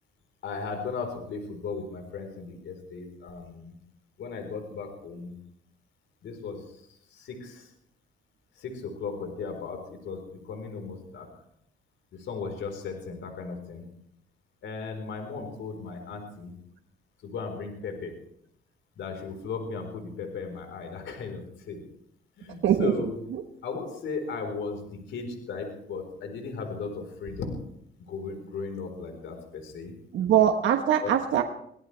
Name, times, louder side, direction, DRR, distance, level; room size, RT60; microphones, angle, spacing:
voice 1, 0.4-3.8 4.2-5.4 6.2-7.7 8.6-11.3 12.1-13.9 14.6-16.6 17.2-18.1 19.0-21.8 22.4-23.2 23.6-27.6 28.1-29.9 31.0-31.1, left 4 dB, 75° left, 4 dB, 4.4 m, -36 dB
voice 2, 22.6-23.4 30.1-31.4, right 10 dB, 75° right, 4 dB, 1.3 m, -23 dB
23.5 x 18.0 x 3.4 m, 0.72 s
cardioid pair, 90°, 20 cm